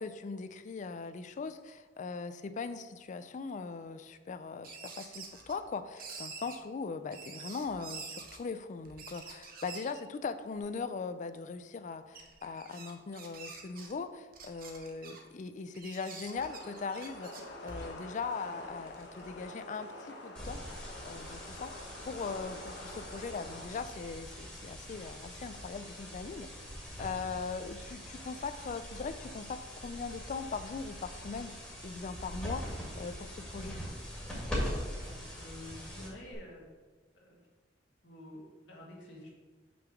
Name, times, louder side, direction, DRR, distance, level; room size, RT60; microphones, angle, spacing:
voice 1, 0.0-26.6 27.0-33.8, left 4 dB, 45° left, 11 dB, 0.4 m, -40 dB
sound 1, 4.6-5.7 6.0-6.6 7.1-8.4 8.8-10.0 10.5-10.6 11.3-11.4 12.1-13.9 14.3-15.2 15.7-18.0 18.6-19.4, right 5 dB, 55° right, 0.9 m, -47 dB
sound 2, 16.3-23.7, left 1 dB, 65° left, 1.3 m, -47 dB
sound 3, 20.3-36.3, equal, 5° left, 1.9 m, -42 dB
voice 2, 34.9-36.6 37.1-37.4 38.0-39.3, left 1 dB, 85° left, -2 dB, 1.9 m, -49 dB
5.9 x 3.8 x 6.1 m, 1.3 s
head